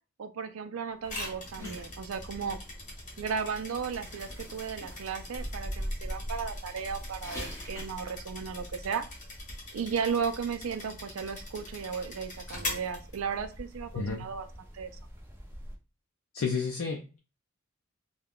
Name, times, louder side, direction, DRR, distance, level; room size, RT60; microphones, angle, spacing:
voice 1, 0.2-2.6 3.2-9.0 9.7-14.5 14.7-14.9, right 6 dB, 70° right, 9 dB, 0.4 m, -35 dB
sound 1, 1.0-15.8, equal, 10° right, 0.6 m, -44 dB
sound 2, 1.1-13.7, left 2 dB, 40° left, 1.0 m, -43 dB
sound 3, 1.6-9.0, equal, 15° left, 0.9 m, -48 dB
voice 2, 13.9-14.3 16.3-17.2, left 5 dB, 70° left, 1 dB, 0.5 m, -31 dB
3.4 x 2.2 x 2.3 m, 0.33 s
head